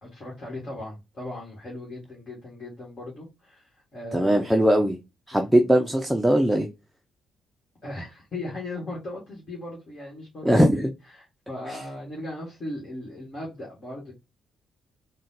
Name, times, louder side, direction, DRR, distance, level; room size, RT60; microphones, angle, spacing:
voice 1, 0.0-4.8 5.3-5.5 7.8-14.1, left 1 dB, 40° left, 1.5 m, -38 dB
voice 2, 4.1-5.0 5.3-6.7 10.4-10.9 11.7-11.8, equal, 5° right, 0.5 m, -20 dB
3.8 x 2.2 x 3.9 m
figure-of-eight pair, 45°, 0 cm